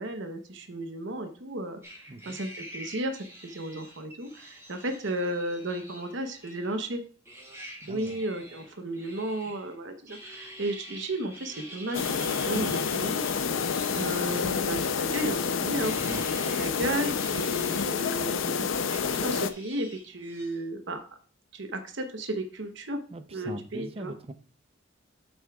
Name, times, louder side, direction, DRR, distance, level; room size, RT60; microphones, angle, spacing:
voice 1, 0.0-1.8 2.3-7.0 7.9-13.2 14.0-16.1 16.4-21.0 21.5-23.0 23.3-24.1, right 1 dB, 70° right, 6 dB, 0.9 m, -34 dB
sound 1, 1.8-7.0 7.3-9.7 10.1-16.7 17.1-18.0 18.2-20.6, equal, 15° right, 3.2 m, -46 dB
voice 2, 2.1-2.4 7.8-8.2 16.0-16.4 23.1-24.3, right 2 dB, 30° right, 10 dB, 0.6 m, -41 dB
sound 2, 11.9-19.5, left 6 dB, 80° left, 0.6 m, -28 dB
8.6 x 7.9 x 2.3 m, 0.40 s
head